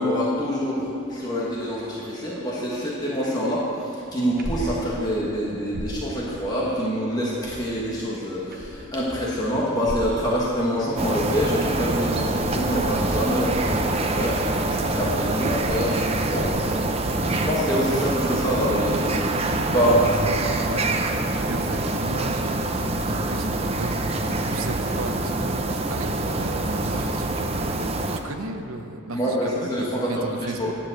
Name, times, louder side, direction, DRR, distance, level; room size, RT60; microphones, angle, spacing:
voice 1, 0.0-16.5 17.4-19.1 19.6-20.0 29.1-30.7, equal, 20° left, -6 dB, 1.3 m, -26 dB
sound 1, 4.2-4.8 5.1-5.2 5.5-6.0 7.2-7.8 8.3-9.0 9.7-10.2 11.0-11.7 12.1-16.8 18.1-18.4 19.1-19.2, right 1 dB, 45° right, 0.9 m, -38 dB
sound 2, 11.0-28.2, right 2 dB, 25° right, 0.5 m, -25 dB
voice 2, 19.8-20.4 20.6-20.9 21.5-27.9 28.2-30.7, right 3 dB, 70° right, 7 dB, 0.7 m, -35 dB
10.5 x 7.0 x 7.6 m, 2.8 s
head